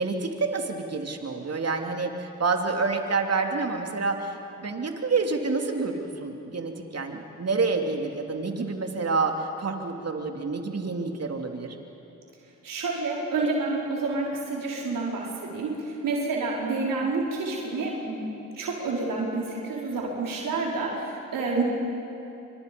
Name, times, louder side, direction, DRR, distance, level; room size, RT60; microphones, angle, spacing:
voice 1, 0.0-11.7, right 4 dB, 45° right, 3 dB, 3.2 m, -28 dB
voice 2, 12.6-21.6, right 3 dB, 70° right, -3 dB, 4.9 m, -29 dB
28.5 x 25.0 x 5.5 m, 2.9 s
supercardioid pair, 45°, 34 cm